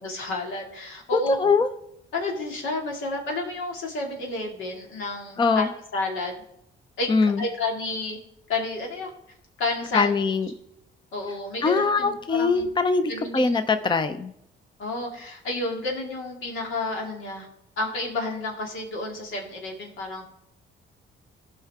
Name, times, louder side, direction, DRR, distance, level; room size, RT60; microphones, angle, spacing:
voice 1, 0.0-1.4 2.1-6.4 7.0-7.1 7.4-8.2 8.5-9.1 9.6-10.1 11.1-12.7 13.1-13.6 14.8-17.5 17.8-20.2, left 2 dB, 85° left, 1 dB, 2.3 m, -30 dB
voice 2, 1.1-1.7 5.4-5.7 7.1-7.4 9.9-10.5 11.6-14.3, left 4 dB, 25° left, 10 dB, 0.6 m, -22 dB
15.5 x 5.6 x 3.6 m, 0.78 s
cardioid pair, 90°, 20 cm